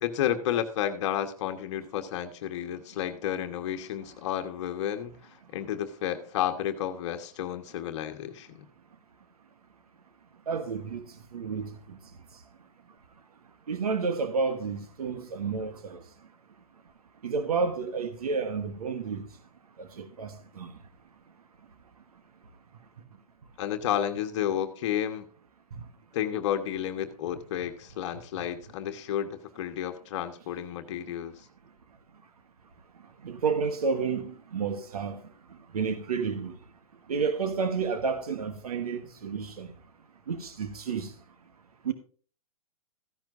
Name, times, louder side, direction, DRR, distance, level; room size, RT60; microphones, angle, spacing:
voice 1, 0.0-8.6 23.6-25.3 26.1-31.5, left 10 dB, 50° left, 1.3 m, -31 dB
voice 2, 10.5-11.0 11.3-11.7 13.7-16.0 17.2-19.2 19.8-20.7 33.2-35.2 35.7-36.5 37.1-39.7 40.3-41.1 41.8-41.9, right 5 dB, 80° right, 1.3 m, -30 dB
14.5 x 10.5 x 2.6 m
hypercardioid pair, 130°, 19 cm